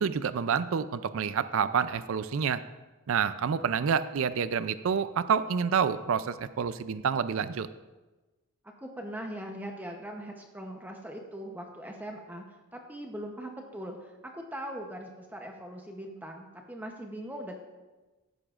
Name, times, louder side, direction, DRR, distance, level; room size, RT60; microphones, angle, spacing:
voice 1, 0.0-2.6 3.1-7.7, right 6 dB, 65° right, 14 dB, 0.4 m, -28 dB
voice 2, 8.8-12.4 12.7-17.6, equal, 10° right, 2 dB, 0.8 m, -40 dB
14.5 x 10.0 x 2.5 m, 1.2 s
head